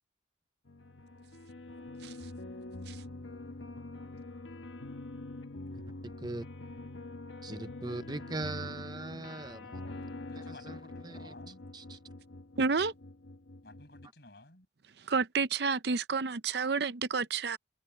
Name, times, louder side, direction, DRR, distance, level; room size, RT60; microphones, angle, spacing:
sound 1, 0.7-14.1, left 2 dB, 80° left, 1.3 m, -45 dB
voice 1, 5.7-6.4 7.4-9.8 10.4-11.3 11.7-12.0, right 2 dB, 20° right, 0.6 m, -41 dB
voice 2, 9.4-10.0 10.3-11.6 13.6-14.7, left 2 dB, 60° left, 6.4 m, -54 dB
voice 3, 12.6-12.9 15.1-17.6, right 5 dB, 60° right, 0.6 m, -30 dB
head